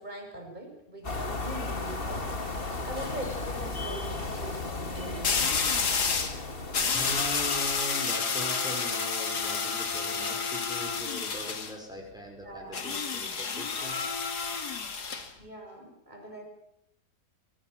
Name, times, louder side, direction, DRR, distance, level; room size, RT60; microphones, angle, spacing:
voice 1, 0.0-2.2 2.8-5.6 12.4-12.8 15.4-16.4, right 1 dB, 25° right, 2 dB, 7.3 m, -41 dB
sound 1, 1.0-7.9, left 3 dB, 35° left, 2.4 m, -35 dB
sound 2, 2.3-2.4 5.2-6.4 6.7-11.7 12.7-15.3, left 5 dB, 80° left, 2.7 m, -30 dB
voice 2, 6.9-14.0, equal, ahead, 0 dB, 5.9 m, -40 dB
23.0 x 19.5 x 9.3 m, 0.76 s
omnidirectional pair, 1.7 m